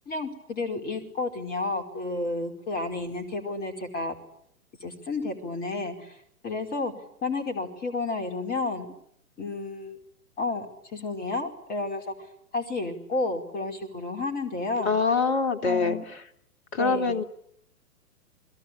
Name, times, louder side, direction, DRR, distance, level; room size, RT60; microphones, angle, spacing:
voice 1, 0.1-4.1 4.8-6.2 6.4-6.9 7.2-8.9 9.4-10.0 10.4-10.7 10.9-12.3 12.5-14.9 15.6-16.0 16.8-17.2, left 3 dB, 20° left, 4 dB, 4.9 m, -31 dB
voice 2, 14.8-16.0 16.7-17.2, left 4 dB, 45° left, 5 dB, 3.0 m, -24 dB
29.5 x 22.0 x 8.6 m, 0.73 s
figure-of-eight pair, 115°, 45 cm